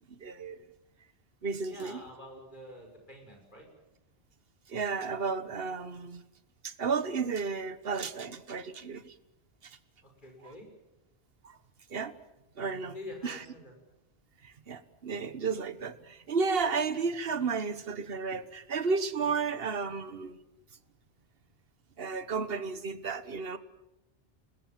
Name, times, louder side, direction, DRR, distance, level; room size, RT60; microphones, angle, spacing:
voice 1, 0.2-0.6 1.4-2.0 4.7-6.2 6.6-9.1 9.6-9.7 10.4-10.5 11.4-11.6 11.9-12.1 12.6-12.9 13.2-13.4 14.4-20.4 22.0-23.6, right 5 dB, 70° right, 13 dB, 1.4 m, -33 dB
voice 2, 1.6-3.7 10.0-10.7 12.9-13.7, left 1 dB, 50° left, 2 dB, 6.6 m, -47 dB
27.5 x 20.5 x 7.6 m, 0.93 s
omnidirectional pair, 1.0 m